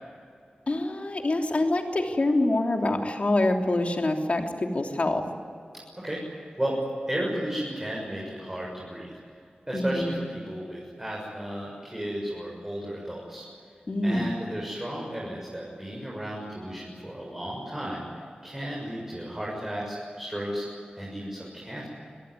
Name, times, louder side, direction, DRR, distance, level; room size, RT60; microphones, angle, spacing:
voice 1, 0.7-4.5 4.7-5.2 9.7-10.2 13.9-14.3, left 2 dB, 50° left, 3 dB, 3.1 m, -25 dB
voice 2, 6.0-6.8 7.1-13.4 14.0-21.9, equal, 15° right, -3 dB, 6.9 m, -34 dB
26.5 x 18.0 x 9.7 m, 2.4 s
wide cardioid pair, 80°, 3 cm